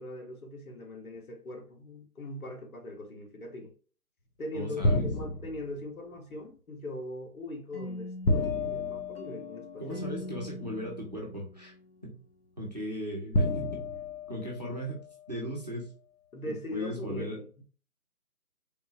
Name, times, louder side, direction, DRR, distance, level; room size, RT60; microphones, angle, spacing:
voice 1, 0.0-3.7 4.4-10.0 16.3-17.6, left 1 dB, 65° left, 1.1 m, -40 dB
voice 2, 4.5-5.1 9.8-11.7 12.0-12.2 12.6-13.9 14.3-15.0 15.3-15.9 16.5-17.4, equal, 30° right, 0.6 m, -37 dB
sound 1, 4.8-5.8 8.2-9.9 11.1-11.2 13.3-15.1, left 2 dB, 85° left, 1.0 m, -30 dB
sound 2, 7.7-12.6, left 1 dB, 40° left, 0.4 m, -43 dB
3.6 x 2.1 x 2.7 m
figure-of-eight pair, 165°, 47 cm